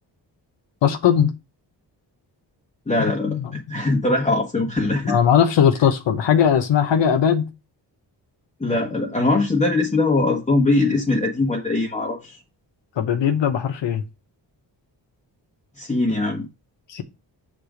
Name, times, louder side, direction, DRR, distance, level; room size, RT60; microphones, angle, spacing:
voice 1, 0.8-1.3 3.3-3.5 5.0-7.5 13.0-14.0 16.9-17.0, left 8 dB, 85° left, 0.9 m, -19 dB
voice 2, 2.9-5.2 8.6-12.4 15.8-16.5, left 2 dB, 15° left, 1.2 m, -21 dB
6.7 x 3.7 x 5.0 m
wide cardioid pair, 90°, 43 cm